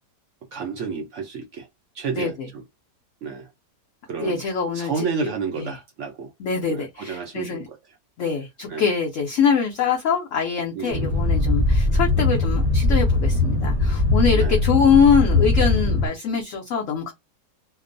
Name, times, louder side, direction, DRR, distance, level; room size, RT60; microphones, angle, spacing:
voice 1, 0.5-1.7 1.9-2.6 3.2-3.5 4.0-4.4 4.7-6.3 6.7-7.8 8.7-8.9 10.8-11.2 14.4-14.6, right 5 dB, 75° right, 0.6 m, -31 dB
voice 2, 2.1-2.5 4.2-5.1 5.6-5.7 6.4-7.7 8.2-17.1, left 6 dB, 70° left, 0.8 m, -23 dB
sound 1, 10.9-16.1, left 2 dB, 25° right, 0.8 m, -20 dB
2.8 x 2.0 x 2.5 m
omnidirectional pair, 1.8 m